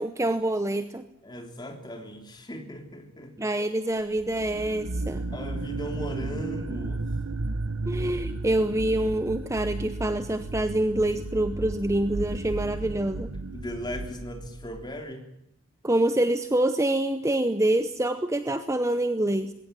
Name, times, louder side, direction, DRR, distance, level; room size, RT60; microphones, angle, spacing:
voice 1, 0.0-1.0 3.4-5.2 7.9-13.3 15.8-19.5, right 1 dB, 15° right, 10 dB, 0.8 m, -26 dB
voice 2, 1.2-3.3 5.3-7.1 13.5-15.2, equal, 20° left, 4 dB, 3.4 m, -38 dB
sound 1, 4.2-14.8, right 2 dB, 85° right, 1.2 m, -34 dB
21.0 x 17.0 x 9.9 m, 0.79 s
head